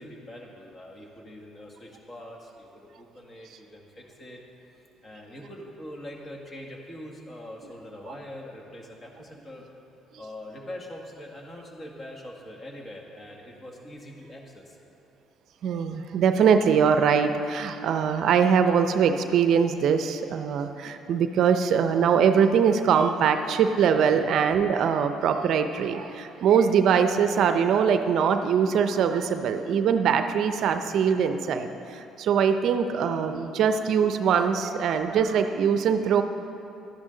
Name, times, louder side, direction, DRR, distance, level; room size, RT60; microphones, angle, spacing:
voice 1, 0.0-4.4 5.0-9.6 10.2-14.8 24.1-24.2, left 1 dB, 30° left, 0 dB, 1.8 m, -43 dB
voice 2, 15.6-36.2, right 7 dB, 65° right, 8 dB, 0.6 m, -22 dB
12.0 x 10.5 x 3.9 m, 2.8 s
supercardioid pair, 80°, 0 cm